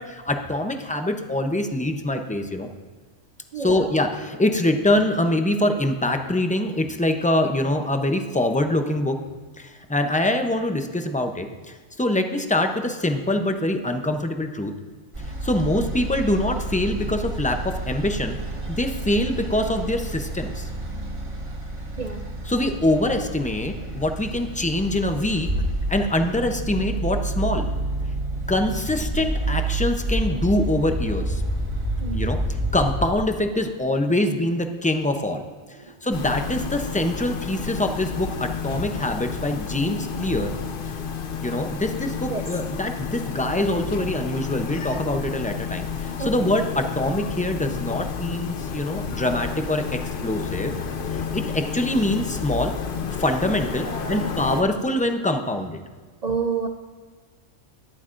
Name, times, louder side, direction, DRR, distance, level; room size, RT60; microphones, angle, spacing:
voice 1, 0.0-2.7 3.6-9.2 9.6-14.7 15.4-18.4 18.7-20.7 22.5-25.5 25.9-27.7 28.5-31.4 32.1-32.4 32.7-35.4 36.0-40.5 41.4-50.7 51.1-52.7 53.1-55.8, left 1 dB, 10° left, 5 dB, 0.4 m, -24 dB
voice 2, 3.5-3.9 22.0-22.2 32.0-32.3 35.9-36.0 42.3-42.5 46.2-46.5 51.3-51.4 53.8-54.3 56.2-56.7, right 5 dB, 55° right, 6 dB, 0.4 m, -29 dB
sound 1, 15.1-33.1, right 1 dB, 25° right, 1.0 m, -29 dB
sound 2, 36.1-54.6, left 6 dB, 50° left, 0.7 m, -31 dB
20.5 x 8.2 x 2.5 m, 1.5 s
omnidirectional pair, 1.3 m